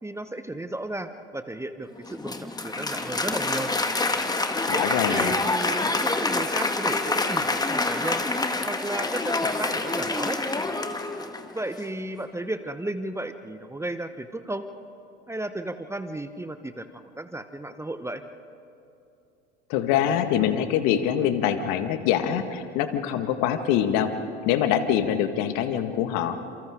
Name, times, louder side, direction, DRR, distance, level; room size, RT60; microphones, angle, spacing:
voice 1, 0.0-3.7 4.7-8.2 8.7-10.4 11.5-14.7 15.3-18.2, right 1 dB, 10° right, 10 dB, 1.0 m, -34 dB
Applause, 2.0-11.6, left 2 dB, 10° left, 1.8 m, -27 dB
voice 2, 4.7-5.4 19.7-24.1 24.5-26.4, left 10 dB, 60° left, 8 dB, 1.9 m, -24 dB
29.5 x 27.5 x 3.8 m, 2.7 s
hypercardioid pair, 75°, 34 cm